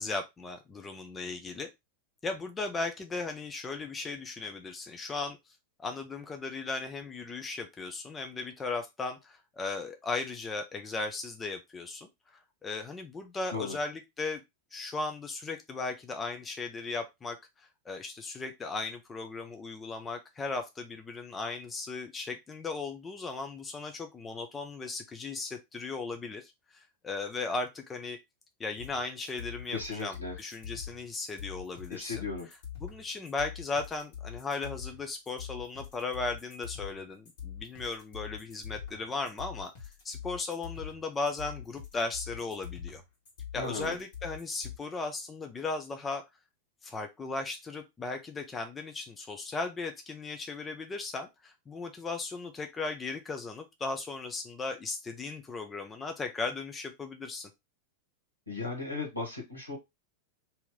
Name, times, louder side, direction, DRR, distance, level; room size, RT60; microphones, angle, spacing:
voice 1, 0.0-1.7 2.2-5.4 5.8-14.4 14.7-28.2 28.6-32.2 32.8-39.7 40.0-43.0 43.5-46.2 46.8-57.5, left 3 dB, 15° left, 5 dB, 0.6 m, -37 dB
sound 1, 28.8-44.8, left 8 dB, 55° left, 1.7 m, -44 dB
voice 2, 29.7-30.3 31.9-32.5 43.6-44.0 58.5-59.8, left 3 dB, 85° left, 0 dB, 1.4 m, -36 dB
2.9 x 2.8 x 3.6 m, 0.20 s
figure-of-eight pair, 90°, 0 cm